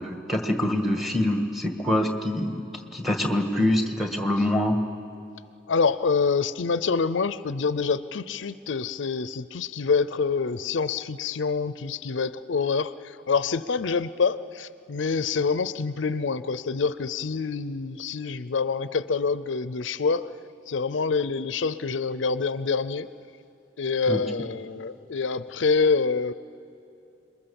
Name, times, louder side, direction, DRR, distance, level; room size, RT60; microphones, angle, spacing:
voice 1, 0.0-2.6 2.9-4.8 24.1-24.2, left 1 dB, ahead, 4 dB, 1.6 m, -25 dB
voice 2, 5.7-20.3 20.7-23.1 23.8-26.3, left 5 dB, 80° left, 14 dB, 0.5 m, -26 dB
28.5 x 21.5 x 7.1 m, 2.6 s
head